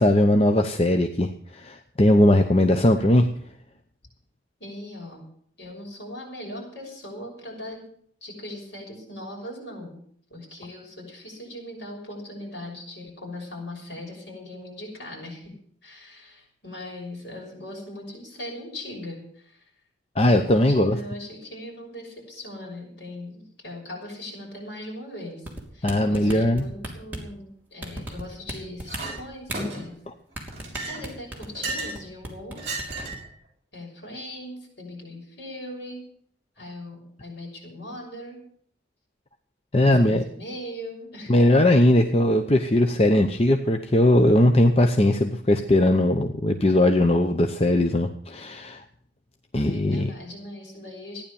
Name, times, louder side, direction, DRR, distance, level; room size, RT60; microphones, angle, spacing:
voice 1, 0.0-3.3 20.2-21.0 25.8-26.6 39.7-40.2 41.3-48.8 49.5-50.1, left 1 dB, 30° left, 5 dB, 0.7 m, -19 dB
voice 2, 2.6-3.1 4.6-5.2 5.6-7.8 8.2-10.0 10.3-15.5 15.8-19.6 20.2-29.9 30.9-32.7 33.7-36.0 36.6-38.4 39.8-41.4 49.5-51.2, left 1 dB, 60° left, -1 dB, 6.2 m, -39 dB
sound 1, 25.5-27.3 27.8-28.5 28.8-29.6 30.4-32.0 32.2-32.5 32.8-33.2, right 1 dB, 10° right, 2.9 m, -34 dB
Chink clink, 28.9-29.2 29.5-30.0 30.5-32.0 32.6-33.3, right 2 dB, 35° right, 4.5 m, -33 dB
14.5 x 10.0 x 7.0 m, 0.64 s
head